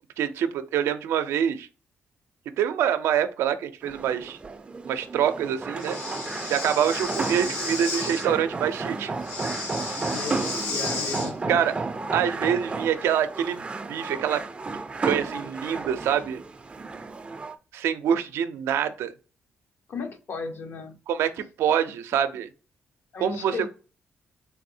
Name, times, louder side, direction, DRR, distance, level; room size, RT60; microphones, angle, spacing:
voice 1, 0.2-1.7 2.6-4.4 4.8-6.0 6.5-9.1 11.5-11.7 12.1-14.4 15.0-16.4 17.7-19.1 21.1-22.5 23.2-23.5, right 9 dB, 90° right, 0.4 m, -25 dB
sound 1, 3.8-17.5, right 3 dB, 25° right, 0.4 m, -33 dB
Breathing, 5.8-8.3 9.2-11.3, left 3 dB, 85° left, 1.2 m, -33 dB
voice 2, 10.1-11.7 19.9-21.0 23.1-23.7, left 5 dB, 60° left, 0.6 m, -35 dB
3.5 x 2.6 x 2.6 m
cardioid pair, 105°, 4 cm